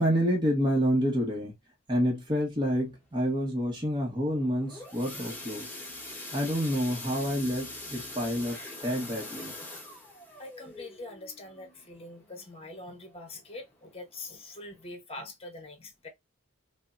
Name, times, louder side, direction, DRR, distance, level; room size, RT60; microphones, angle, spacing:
voice 1, 0.0-1.5 1.9-5.7 6.3-8.6 8.8-9.5, equal, 20° right, 1.0 m, -28 dB
sound 1, 4.4-13.1 13.5-13.8 14.0-14.1 14.6-14.7, left 2 dB, 10° left, 1.2 m, -43 dB
voice 2, 10.4-16.1, left 2 dB, 30° left, 1.0 m, -44 dB
3.5 x 2.1 x 2.4 m
head